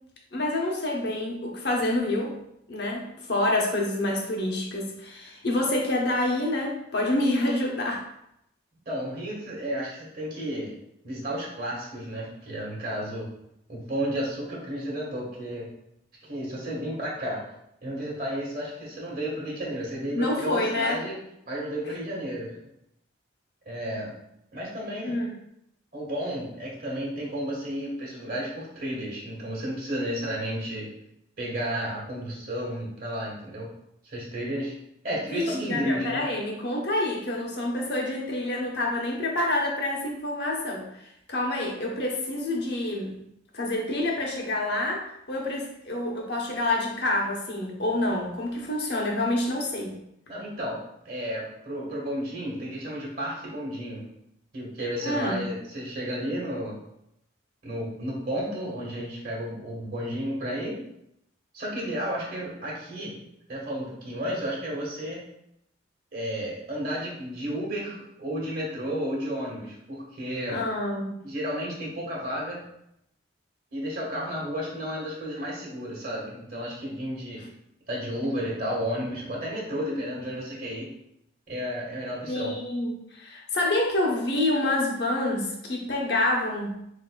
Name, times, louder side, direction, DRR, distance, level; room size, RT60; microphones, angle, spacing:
voice 1, 0.3-2.4 2.7-8.0 20.1-21.0 25.0-25.3 35.3-40.9 41.3-43.2 43.5-49.9 55.0-55.4 70.5-71.2 82.3-86.8, left 1 dB, 55° left, -1 dB, 0.9 m, -27 dB
voice 2, 8.8-10.7 11.0-13.3 13.7-15.7 16.2-17.4 17.8-21.1 21.5-22.5 23.6-24.1 24.5-25.2 25.9-30.9 31.4-33.7 34.0-34.7 35.0-36.3 50.3-50.8 51.0-54.0 54.5-56.8 57.6-60.8 61.5-63.2 63.5-65.2 66.1-70.6 71.2-72.6 73.7-77.4 77.9-80.9 81.5-82.6, equal, 45° right, -4 dB, 1.4 m, -32 dB
6.4 x 2.7 x 2.3 m, 0.79 s
head